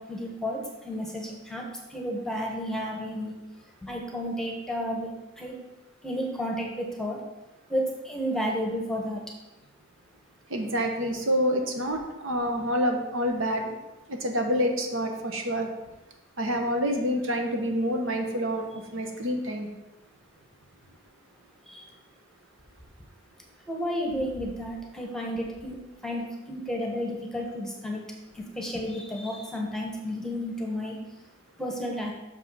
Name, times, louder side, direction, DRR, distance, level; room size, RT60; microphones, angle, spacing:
voice 1, 0.0-1.6 1.9-3.3 3.8-5.1 5.4-5.5 6.0-7.2 7.7-9.2 21.7-21.8 23.7-28.0 28.3-31.0 31.6-32.1, equal, 5° left, -1 dB, 1.2 m, -32 dB
voice 2, 10.5-13.8 14.1-15.7 16.4-19.7, equal, 65° right, 3 dB, 1.1 m, -27 dB
6.5 x 5.5 x 5.6 m, 1.0 s
head